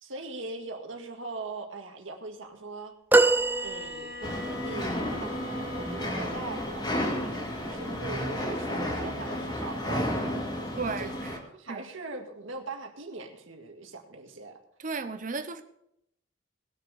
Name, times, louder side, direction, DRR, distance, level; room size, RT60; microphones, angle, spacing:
voice 1, 0.0-2.9 3.6-10.1 10.6-10.7 11.0-14.6, right 3 dB, 80° right, 3 dB, 1.9 m, -41 dB
sound 1, 3.1-4.5 5.3-5.4, right 2 dB, 10° right, 0.4 m, -23 dB
Bowed string instrument, 3.2-6.9, left 1 dB, 55° left, 3.2 m, -42 dB
sound 2, 4.2-11.4, left 1 dB, 20° left, 2.1 m, -32 dB
voice 2, 10.8-11.3 11.7-11.9 14.8-15.6, right 4 dB, 40° right, 9 dB, 0.8 m, -34 dB
19.5 x 6.6 x 4.9 m, 0.75 s
head